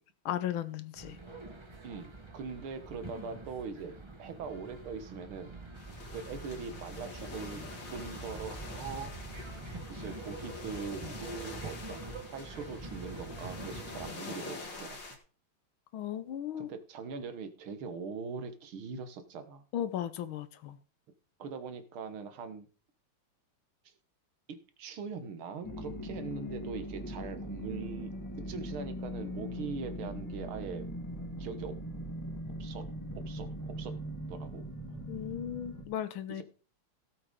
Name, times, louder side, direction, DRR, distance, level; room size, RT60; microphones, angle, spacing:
voice 1, 0.2-1.2 15.9-16.7 19.7-20.8 35.1-36.4, left 10 dB, 70° left, 1.6 m, -36 dB
sound 1, 0.9-14.1, right 2 dB, 15° right, 1.1 m, -45 dB
voice 2, 1.8-5.5 6.1-7.6 7.9-9.1 9.9-15.0 16.6-19.6 21.4-22.7 24.8-28.1 28.5-30.9 31.4-31.8 32.6-32.9 33.3-33.9 34.3-34.7 36.3-36.4, right 5 dB, 75° right, 2.1 m, -41 dB
sound 2, 5.8-15.2, left 3 dB, 55° left, 2.9 m, -46 dB
sound 3, 25.6-35.8, equal, 10° left, 1.7 m, -40 dB
17.0 x 7.9 x 3.8 m
omnidirectional pair, 2.4 m